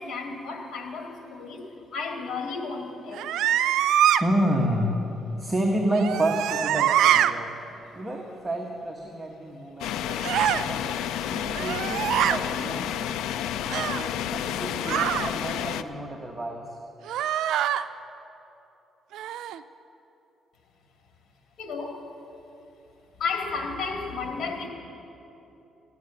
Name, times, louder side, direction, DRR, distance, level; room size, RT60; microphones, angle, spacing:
voice 1, 0.0-3.3 7.7-7.8 21.6-22.1 23.2-24.7, left 4 dB, 65° left, 2 dB, 2.1 m, -33 dB
sound 1, 3.1-4.2 5.9-7.3 10.2-10.6 11.5-12.4 13.7-14.1 14.8-15.3 17.1-17.8 19.1-19.6, right 11 dB, 85° right, 0.4 m, -24 dB
voice 2, 4.2-5.0 5.4-7.5 8.0-10.8 11.3-12.9 13.5-16.7, right 1 dB, 15° right, 0 dB, 1.3 m, -29 dB
sound 2, 9.8-15.8, left 10 dB, 90° left, 0.4 m, -30 dB
15.5 x 9.6 x 6.8 m, 2.9 s
cardioid pair, 90°, 0 cm